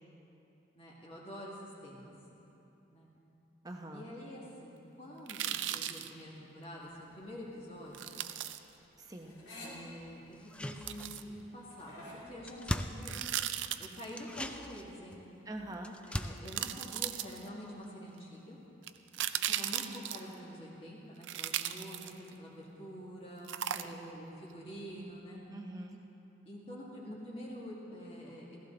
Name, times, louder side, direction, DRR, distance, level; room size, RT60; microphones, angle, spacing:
voice 1, 0.8-2.1 2.9-3.1 3.9-8.1 9.6-13.2 13.8-15.2 16.1-18.6 19.3-23.5 23.8-25.4 26.4-28.6, equal, 30° left, -4 dB, 2.1 m, -47 dB
voice 2, 3.6-4.1 9.0-9.4 15.5-16.0 23.7-24.0 25.5-26.0, right 1 dB, 20° right, 2 dB, 1.0 m, -44 dB
sound 1, 5.3-6.1 7.9-8.6 10.9-11.2 13.0-14.1 15.7-15.8 16.5-17.6 18.8-20.3 21.2-22.4 23.5-24.2 24.5-24.6, right 11 dB, 80° right, 0.5 m, -37 dB
sound 2, 6.8-12.2, left 1 dB, 55° left, 2.9 m, -53 dB
sound 3, 10.3-11.5 11.8-11.9 12.1-13.7 14.1-17.8 18.1-18.2, left 1 dB, 5° left, 0.3 m, -41 dB
15.5 x 15.5 x 4.0 m, 2.9 s
head